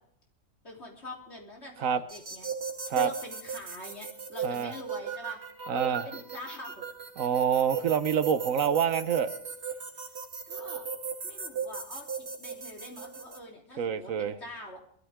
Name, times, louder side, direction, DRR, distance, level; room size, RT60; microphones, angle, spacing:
voice 1, 0.6-2.5 2.9-5.4 5.7-6.8 9.9-10.2 10.5-10.9 11.2-14.8, left 1 dB, 55° left, -1 dB, 3.8 m, -45 dB
sound 1, 2.1-13.4, right 6 dB, 55° right, 2.1 m, -37 dB
voice 2, 4.4-4.7 5.7-6.1 7.2-9.3 13.8-14.3, right 7 dB, 85° right, 11 dB, 1.3 m, -27 dB
21.5 x 13.5 x 3.6 m, 0.69 s
omnidirectional pair, 1.4 m